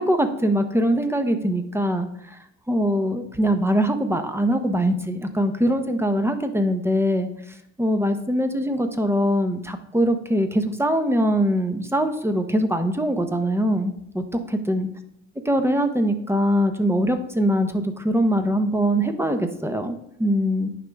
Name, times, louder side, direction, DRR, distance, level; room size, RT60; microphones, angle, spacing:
voice 1, 0.0-2.1 2.7-7.3 7.8-14.9 15.5-20.7, equal, 10° right, 7 dB, 1.0 m, -22 dB
9.6 x 5.6 x 3.6 m, 0.76 s
cardioid pair, 90°, 30 cm